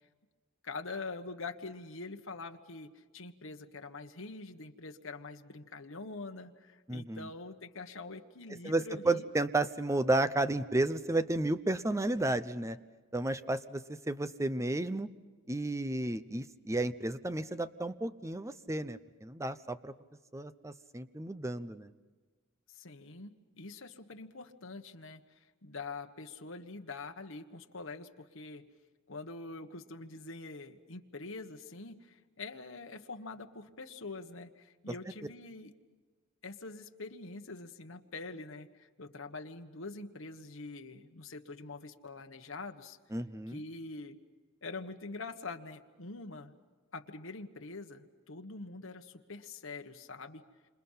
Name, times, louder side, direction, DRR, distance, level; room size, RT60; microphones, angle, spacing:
voice 1, 0.6-9.3 22.7-28.7 29.1-35.7 36.4-43.0 43.5-44.2 44.6-46.5 46.9-50.4, left 3 dB, 70° left, 5 dB, 1.5 m, -45 dB
voice 2, 6.9-7.3 8.6-12.8 13.1-15.1 15.5-19.9 20.3-21.9 43.1-43.6, right 2 dB, 15° right, 12 dB, 0.7 m, -32 dB
29.5 x 27.0 x 5.7 m, 1.4 s
head